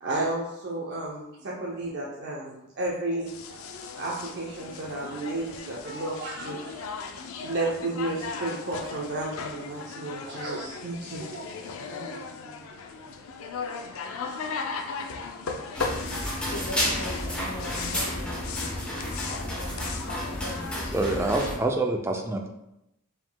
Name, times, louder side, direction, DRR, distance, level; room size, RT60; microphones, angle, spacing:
voice 1, 0.0-3.7 3.9-6.8 7.3-11.7 12.1-12.2, right 2 dB, 50° right, -4 dB, 0.6 m, -32 dB
sound 1, 3.3-21.5, left 5 dB, 75° left, 0.4 m, -38 dB
voice 2, 11.9-12.6 15.8-15.9 16.5-21.3, left 1 dB, 55° left, -3 dB, 0.9 m, -40 dB
sound 2, 15.7-21.6, equal, 5° left, 0.8 m, -31 dB
voice 3, 20.9-22.5, right 2 dB, 10° right, 3 dB, 0.4 m, -26 dB
4.8 x 3.7 x 2.2 m, 0.88 s
head